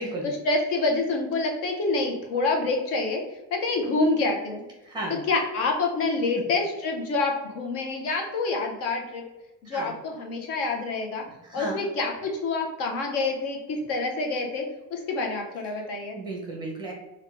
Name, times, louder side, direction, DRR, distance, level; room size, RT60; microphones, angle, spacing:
voice 1, 0.4-3.2 3.5-4.6 5.1-9.2 9.7-11.2 11.5-14.6 14.9-16.2, left 3 dB, 45° left, 2 dB, 0.7 m, -27 dB
voice 2, 4.8-5.2 9.6-10.0 11.4-11.8 15.8-15.9 16.1-16.9, right 2 dB, 15° right, -1 dB, 0.7 m, -34 dB
3.5 x 2.3 x 3.4 m, 1.0 s
cardioid pair, 165°, 33 cm